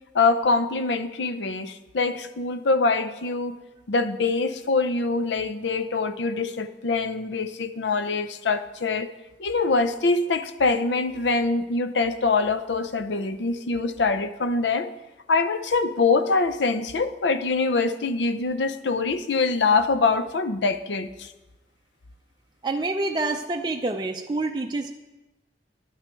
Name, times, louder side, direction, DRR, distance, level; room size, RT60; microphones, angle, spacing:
voice 1, 0.1-3.6 3.9-9.1 9.4-14.9 15.3-21.3, left 3 dB, 85° left, 11 dB, 0.6 m, -24 dB
voice 2, 22.6-24.9, right 2 dB, 25° right, 3 dB, 0.4 m, -27 dB
11.0 x 9.0 x 4.5 m, 1.1 s
head